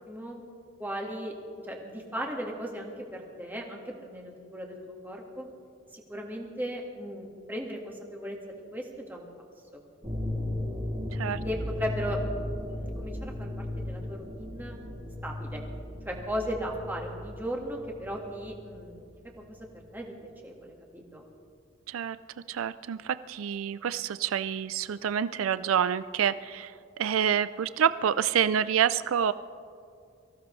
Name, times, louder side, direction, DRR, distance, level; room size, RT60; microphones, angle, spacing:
voice 1, 0.1-0.4 0.8-1.3 1.6-5.5 5.9-9.3 9.7-9.8 11.4-12.2 12.5-14.8 15.2-15.6 16.0-19.1 19.4-20.1 20.4-21.3, equal, 10° right, 0 dB, 1.7 m, -37 dB
sound 1, 10.0-19.5, left 1 dB, 30° right, 2.6 m, -36 dB
voice 2, 22.5-26.7 27.0-29.3, right 8 dB, 85° right, 14 dB, 0.4 m, -27 dB
24.0 x 15.5 x 3.2 m, 2.4 s
head